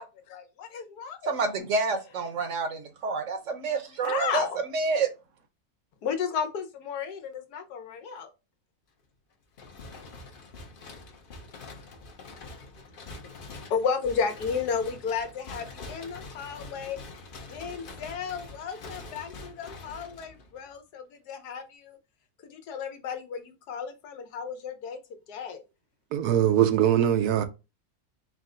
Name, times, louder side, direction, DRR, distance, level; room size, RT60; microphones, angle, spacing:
voice 1, 0.0-1.3 4.0-4.6 6.0-8.3 13.7-17.0 17.5-22.0 22.4-25.0 25.3-25.6, left 6 dB, 85° left, 1.3 m, -33 dB
voice 2, 1.2-4.5 4.7-5.1, right 4 dB, 60° right, 1.0 m, -28 dB
sound 1, 9.5-20.7, left 3 dB, 50° left, 0.6 m, -45 dB
voice 3, 26.1-27.4, right 10 dB, 80° right, 1.1 m, -22 dB
4.7 x 2.1 x 3.7 m
omnidirectional pair, 1.6 m